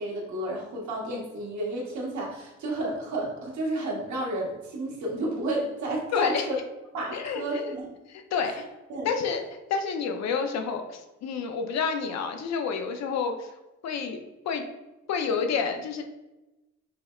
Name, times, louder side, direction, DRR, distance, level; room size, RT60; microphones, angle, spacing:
voice 1, 0.0-6.6 6.9-7.9 8.4-8.5 8.9-9.1, right 1 dB, 70° right, -3 dB, 1.2 m, -31 dB
voice 2, 6.1-6.5 7.1-7.7 8.1-8.7 9.0-9.4 9.7-14.2 14.5-14.6 15.1-16.0, left 5 dB, 60° left, 5 dB, 0.5 m, -29 dB
5.7 x 2.0 x 2.4 m, 1.0 s
cardioid pair, 90°, 30 cm